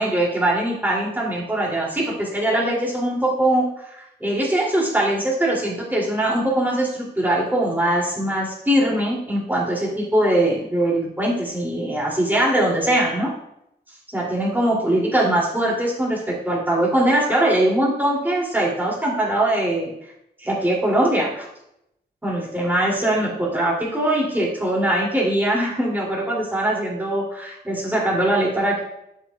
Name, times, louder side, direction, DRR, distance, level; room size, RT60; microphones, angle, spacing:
voice 1, 0.0-13.3 14.1-19.9 20.4-21.5 22.2-28.8, right 1 dB, 10° right, -4 dB, 2.5 m, -21 dB
13.0 x 5.8 x 2.3 m, 0.79 s
wide cardioid pair, 110°, 19 cm